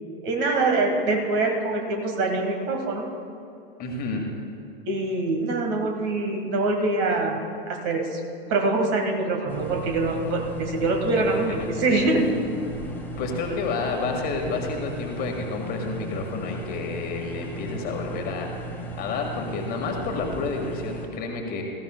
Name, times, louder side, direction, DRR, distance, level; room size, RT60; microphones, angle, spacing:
voice 1, 0.2-3.1 4.9-7.4 7.7-8.2 8.5-12.2, right 2 dB, 35° right, 3 dB, 1.6 m, -24 dB
voice 2, 3.8-4.2 11.2-12.1 13.2-21.6, left 3 dB, 30° left, 2 dB, 1.7 m, -30 dB
sound 1, 9.5-21.1, right 1 dB, 5° left, 1.5 m, -36 dB
18.5 x 14.0 x 2.2 m, 2.6 s
figure-of-eight pair, 100°, 31 cm